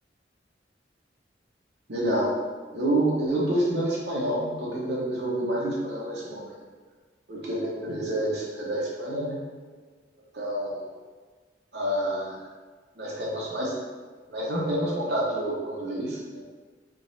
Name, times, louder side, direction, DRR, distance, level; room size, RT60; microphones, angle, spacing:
voice 1, 1.9-2.4 2.7-6.6 7.3-9.4 10.3-10.8 11.7-12.4 13.0-13.7 14.3-16.4, right 1 dB, 65° right, -5 dB, 0.9 m, -28 dB
3.7 x 2.9 x 2.6 m, 1.4 s
head